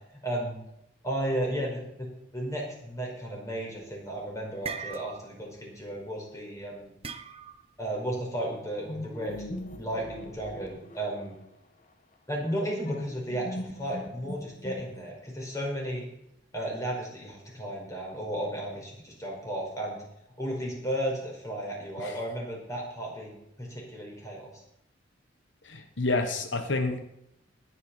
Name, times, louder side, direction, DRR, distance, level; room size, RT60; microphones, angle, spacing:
voice 1, 0.2-0.6 1.0-6.9 7.8-9.5 9.8-11.4 12.3-16.1 16.5-20.0 20.4-24.5, right 1 dB, 15° left, -1 dB, 5.2 m, -34 dB
sound 1, 3.8-4.1 4.4-5.5 5.8-6.0 7.0-7.7, right 5 dB, 30° right, 0.9 m, -39 dB
sound 2, 8.9-11.4 12.8-15.3, left 1 dB, 40° left, 1.5 m, -40 dB
voice 2, 25.6-27.0, left 3 dB, 75° left, 6 dB, 1.3 m, -29 dB
20.0 x 9.2 x 4.4 m, 0.79 s
head